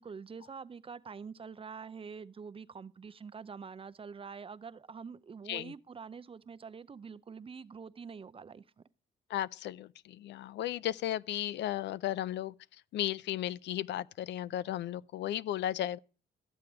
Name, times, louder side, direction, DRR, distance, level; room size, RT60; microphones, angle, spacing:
voice 1, 0.0-8.8, right 5 dB, 30° right, 0.5 m, -46 dB
voice 2, 9.3-12.5 12.9-16.0, left 12 dB, 75° left, 0.4 m, -35 dB
13.0 x 7.7 x 4.8 m
cardioid pair, 90°, 18 cm